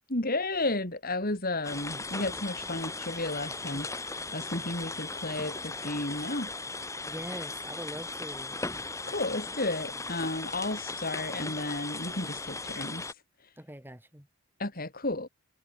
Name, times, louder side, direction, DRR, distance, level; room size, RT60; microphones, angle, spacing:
voice 1, 0.1-3.9 4.3-6.5 9.1-13.0 14.6-15.3, left 2 dB, 40° left, 3.9 m, -33 dB
sound 1, 1.6-13.1, left 3 dB, 15° left, 5.0 m, -37 dB
voice 2, 7.1-8.6 13.6-14.3, equal, 10° right, 7.1 m, -42 dB
head